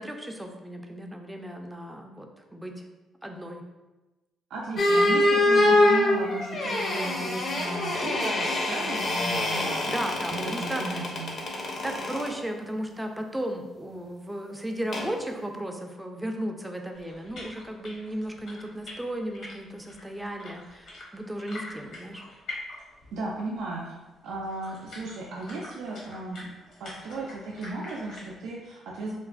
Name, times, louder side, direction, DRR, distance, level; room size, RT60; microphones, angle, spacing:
voice 1, 0.0-2.7 3.2-3.6 9.9-11.0 11.8-22.2, right 1 dB, 10° right, 3 dB, 0.4 m, -35 dB
voice 2, 4.5-9.9 10.3-11.3 23.1-24.0 24.2-26.5 26.8-29.2, right 2 dB, 85° right, -4 dB, 0.3 m, -35 dB
sound 1, 4.8-12.3 14.9-15.1, left 1 dB, 50° left, 0.6 m, -25 dB
sound 2, 16.9-23.2 23.5-23.6 24.2-28.3, left 2 dB, 75° left, 1.0 m, -44 dB
3.0 x 2.1 x 2.4 m, 1.1 s
cardioid pair, 90°, 0 cm